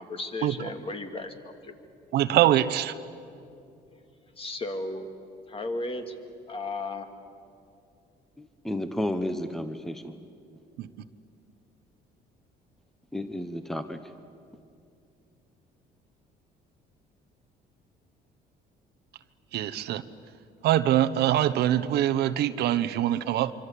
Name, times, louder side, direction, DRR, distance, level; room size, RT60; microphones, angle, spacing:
voice 1, 0.0-1.7 4.3-5.1 5.5-6.1 6.5-7.1, left 2 dB, 35° left, 6 dB, 2.4 m, -34 dB
voice 2, 2.1-2.9 10.8-10.9 19.5-20.0 20.6-23.5, right 12 dB, 75° right, 13 dB, 1.0 m, -23 dB
voice 3, 8.4-10.1 13.1-14.0, left 1 dB, ahead, 9 dB, 1.1 m, -32 dB
25.5 x 25.0 x 8.4 m, 2.5 s
cardioid pair, 110°, 17 cm